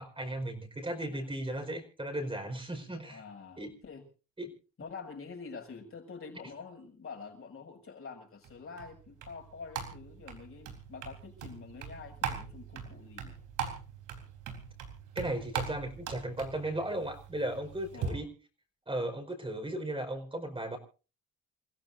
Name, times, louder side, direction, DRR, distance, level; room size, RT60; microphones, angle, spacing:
voice 1, 0.0-3.2 3.6-3.7 4.4-4.6 15.1-18.3 18.9-20.8, right 1 dB, 20° right, 2 dB, 4.9 m, -36 dB
voice 2, 3.0-4.0 4.8-13.4 17.9-18.2, left 5 dB, 45° left, 3 dB, 7.3 m, -47 dB
sound 1, 8.4-18.1, right 7 dB, 85° right, 4.1 m, -41 dB
29.0 x 15.5 x 2.7 m, 0.35 s
cardioid pair, 90°, 30 cm